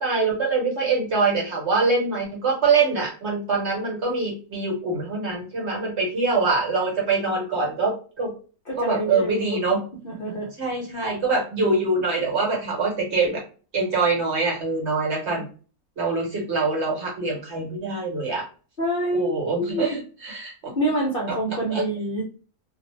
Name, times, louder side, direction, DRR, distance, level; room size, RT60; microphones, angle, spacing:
voice 1, 0.0-8.3 8.8-9.8 10.6-13.4 13.7-15.5 16.0-18.5 19.1-20.7 21.7-21.8, right 3 dB, 55° right, -2 dB, 1.1 m, -24 dB
voice 2, 8.7-9.6 10.0-10.5 18.8-19.3 19.6-20.0 20.8-22.2, right 1 dB, 50° left, -3 dB, 0.7 m, -26 dB
2.6 x 2.0 x 3.0 m, 0.38 s
omnidirectional pair, 1.5 m